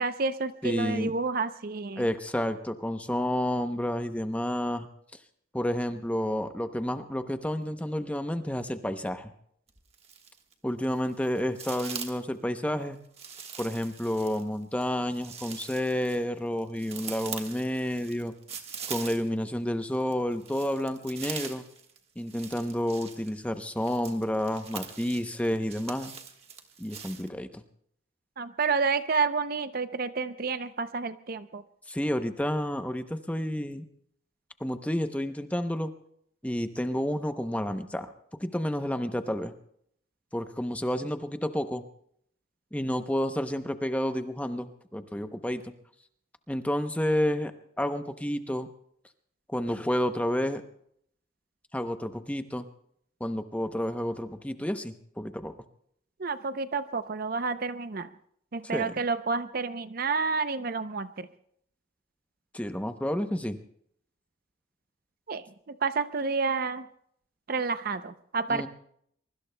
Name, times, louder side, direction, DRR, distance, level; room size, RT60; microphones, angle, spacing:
voice 1, 0.0-2.1 28.4-31.6 56.2-58.1 58.5-61.3 65.3-66.9 67.5-68.7, right 4 dB, 50° right, 12 dB, 0.6 m, -30 dB
voice 2, 0.6-1.1 2.0-4.9 5.5-9.3 10.6-13.0 13.6-18.3 18.9-21.6 22.2-26.1 26.8-27.6 31.9-33.8 34.6-35.9 36.4-38.1 38.4-39.5 40.3-41.8 42.7-45.7 46.5-47.5 47.8-48.7 49.5-50.6 51.7-52.7 53.2-55.5 58.7-58.9 62.5-63.6 68.5-68.7, equal, 5° left, 8 dB, 0.7 m, -30 dB
sound 1, 9.7-10.5 10.8-12.3 13.1-19.5 19.8-27.3, right 6 dB, 30° right, 1.4 m, -42 dB
24.0 x 23.0 x 2.2 m, 0.69 s
head